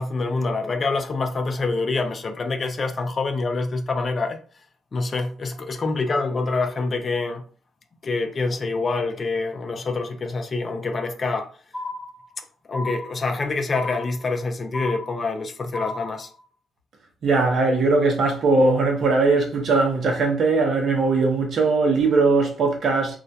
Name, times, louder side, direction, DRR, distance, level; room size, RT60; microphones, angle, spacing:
voice 1, 0.0-4.4 4.9-7.4 8.0-11.5 12.7-16.3, left 3 dB, 35° left, 0.4 m, -26 dB
sound 1, 11.7-12.4 12.7-13.4 13.7-14.4 14.7-15.4 15.7-16.4, left 2 dB, 5° left, 0.9 m, -34 dB
voice 2, 17.2-23.2, right 3 dB, 55° right, 0.7 m, -20 dB
2.3 x 2.1 x 2.7 m
cardioid pair, 90°, 0 cm